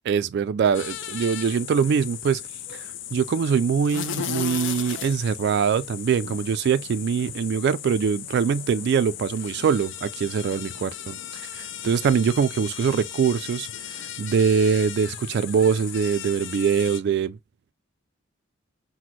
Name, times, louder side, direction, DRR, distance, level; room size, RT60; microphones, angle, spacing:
voice 1, 0.1-2.4 2.7-2.9 3.1-10.9 11.6-17.4, right 6 dB, 60° right, 0.3 m, -23 dB
sound 1, 0.7-17.0, left 10 dB, 65° left, 0.5 m, -36 dB
5.9 x 2.1 x 3.0 m
head